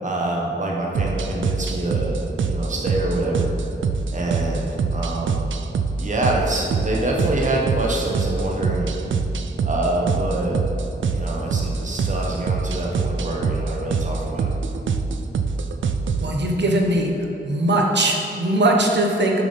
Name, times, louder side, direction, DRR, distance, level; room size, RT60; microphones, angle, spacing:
voice 1, 0.0-3.5 4.1-5.5 6.0-8.9 9.6-10.6 11.1-14.6, right 1 dB, 40° right, -2 dB, 1.3 m, -26 dB
sound 1, 0.9-16.3, right 4 dB, 80° right, 0.5 m, -25 dB
voice 2, 16.2-17.1 17.5-19.4, right 1 dB, 60° right, 1 dB, 1.1 m, -20 dB
7.0 x 6.3 x 5.3 m, 3.0 s
wide cardioid pair, 85°, 20 cm